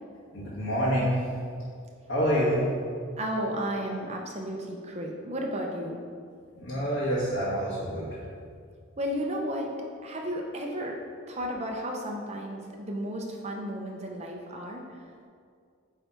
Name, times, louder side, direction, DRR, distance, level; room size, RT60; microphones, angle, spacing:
voice 1, 0.3-1.3 2.1-2.7 6.5-8.2, equal, 65° left, -9 dB, 1.5 m, -27 dB
voice 2, 3.2-6.0 9.0-9.8 10.0-11.0 11.3-15.3, equal, 35° right, 0 dB, 0.8 m, -33 dB
8.3 x 3.4 x 4.5 m, 2.2 s
head